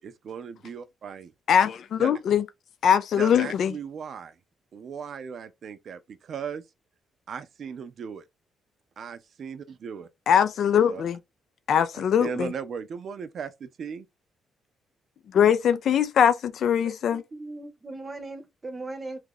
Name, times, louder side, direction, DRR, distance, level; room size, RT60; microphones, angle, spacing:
voice 1, 0.0-1.3 2.0-2.1 3.2-4.4 4.7-6.6 7.3-8.2 9.0-10.1 10.9-11.0 11.9-14.1, right 6 dB, 55° right, 0.5 m, -37 dB
voice 2, 1.5-2.4 2.8-3.7 10.3-11.2 11.7-12.5 15.3-17.2, left 8 dB, 65° left, 0.4 m, -21 dB
voice 3, 16.8-19.2, right 2 dB, 25° right, 0.7 m, -39 dB
2.7 x 2.4 x 3.7 m
cardioid pair, 90°, 0 cm